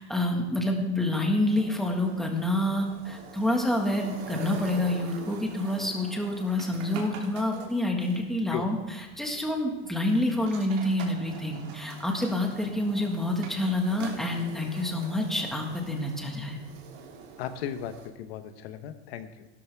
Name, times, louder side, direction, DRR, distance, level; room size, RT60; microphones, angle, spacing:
voice 1, 0.0-8.8 9.2-16.6, left 1 dB, ahead, 1 dB, 1.6 m, -28 dB
sound 1, 1.1-18.1, right 5 dB, 65° right, 3.0 m, -45 dB
voice 2, 17.4-19.5, left 9 dB, 70° left, 9 dB, 1.1 m, -36 dB
16.0 x 13.0 x 3.5 m, 1.1 s
supercardioid pair, 155°, 32 cm